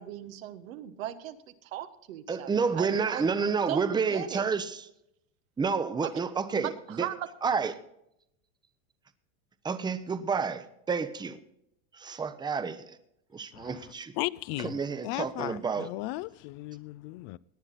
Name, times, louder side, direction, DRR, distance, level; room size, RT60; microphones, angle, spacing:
voice 1, 0.0-1.4 1.6-3.3 3.7-4.4 6.0-6.1 6.5-7.3, right 12 dB, 85° right, 1.3 m, -38 dB
voice 2, 2.3-4.8 5.6-7.1 7.4-7.7 9.6-11.4 11.9-13.0 13.3-14.1 14.6-15.9, right 5 dB, 10° right, 0.7 m, -30 dB
voice 3, 13.5-14.8 15.0-17.4, left 19 dB, 50° left, 0.4 m, -36 dB
18.0 x 9.7 x 4.0 m
supercardioid pair, 130°, 40 cm